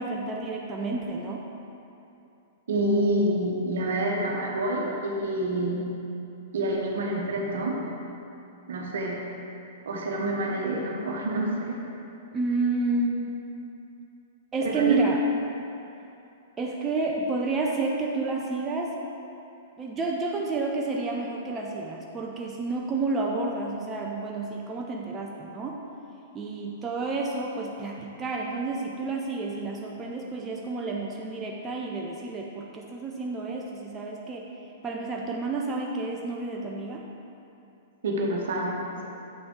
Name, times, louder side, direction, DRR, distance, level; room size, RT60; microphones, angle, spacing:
voice 1, 0.0-1.4 12.3-13.4 14.5-15.2 16.6-19.0 19.8-25.8 26.3-34.5 34.8-37.1, right 3 dB, 20° right, -1 dB, 0.6 m, -30 dB
voice 2, 2.7-5.8 6.5-7.8 8.7-9.2 9.8-11.8 14.6-15.0 38.0-39.1, right 1 dB, 60° right, -1 dB, 1.1 m, -27 dB
8.4 x 5.9 x 3.8 m, 2.8 s
figure-of-eight pair, 105°, 0 cm